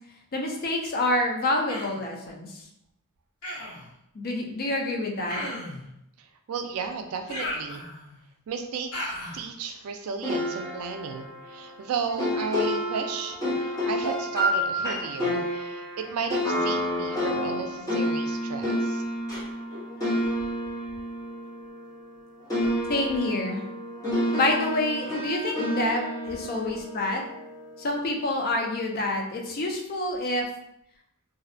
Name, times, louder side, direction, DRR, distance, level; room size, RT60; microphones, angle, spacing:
voice 1, 0.3-2.6 4.1-5.4 22.9-23.6 24.3-27.2 27.8-30.4, left 2 dB, 45° left, 2 dB, 0.4 m, -27 dB
Human voice, 1.7-2.0 3.4-3.9 5.3-5.8 7.3-8.2 8.9-9.4, left 1 dB, 75° left, 0.7 m, -35 dB
voice 2, 6.2-7.8 8.5-19.0, right 5 dB, 70° right, 5 dB, 0.3 m, -34 dB
sound 1, 10.2-22.2 22.5-27.7, equal, 15° left, 0.8 m, -29 dB
2.6 x 2.0 x 2.5 m, 0.79 s
head